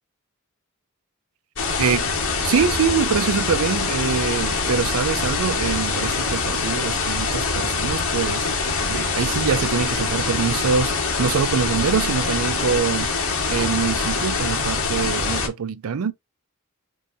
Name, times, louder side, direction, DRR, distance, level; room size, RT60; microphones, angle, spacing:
sound 1, 1.6-15.5, left 4 dB, 70° left, 1.7 m, -24 dB
voice 1, 1.8-2.1 2.4-16.1, right 6 dB, 80° right, 0.4 m, -24 dB
5.5 x 2.9 x 2.7 m
head